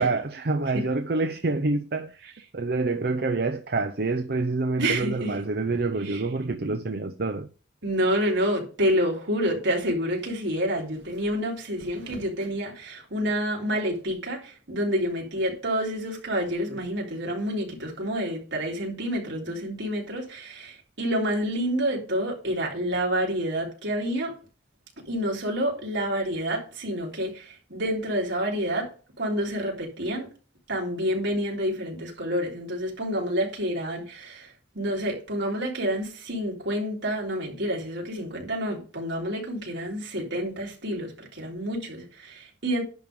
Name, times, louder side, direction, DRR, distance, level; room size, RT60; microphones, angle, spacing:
voice 1, 0.0-7.5, right 3 dB, 55° right, 0.7 m, -27 dB
voice 2, 4.8-5.4 6.0-6.2 7.8-24.4 25.1-28.9 29.2-30.3 30.7-42.8, equal, 70° right, 3.6 m, -28 dB
10.5 x 3.7 x 6.8 m
head